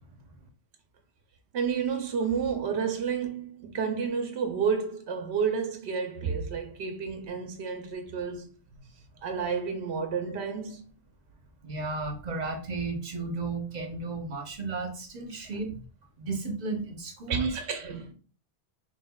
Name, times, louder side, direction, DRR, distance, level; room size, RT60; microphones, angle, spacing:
voice 1, 1.5-8.5 9.2-10.8 17.3-18.1, right 6 dB, 85° right, 1.0 m, -30 dB
voice 2, 11.6-15.7 16.2-17.6, right 3 dB, 45° right, 1.0 m, -33 dB
5.4 x 3.2 x 2.3 m
omnidirectional pair, 1.1 m